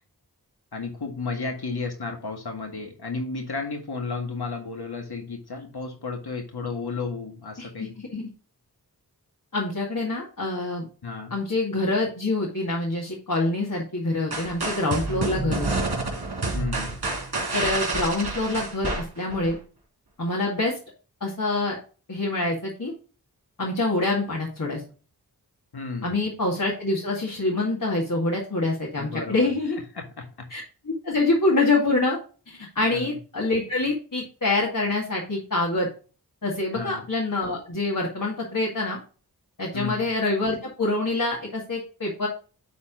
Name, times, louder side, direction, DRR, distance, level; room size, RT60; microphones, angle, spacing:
voice 1, 0.7-7.9 11.0-11.3 16.5-16.9 25.7-26.2 29.0-30.5 32.8-33.2 36.7-37.0 39.7-40.1, left 4 dB, 75° left, 3 dB, 1.9 m, -33 dB
voice 2, 7.6-8.3 9.5-10.9 11.3-15.8 17.5-19.6 20.2-20.8 21.2-21.8 22.1-22.9 23.6-24.8 26.0-29.8 30.5-32.2 32.5-35.9 36.4-39.0 39.6-42.3, left 2 dB, 55° left, -3 dB, 2.2 m, -26 dB
sound 1, 14.3-19.6, right 3 dB, 75° right, 2.8 m, -28 dB
9.5 x 4.2 x 3.9 m, 0.37 s
wide cardioid pair, 65°, 38 cm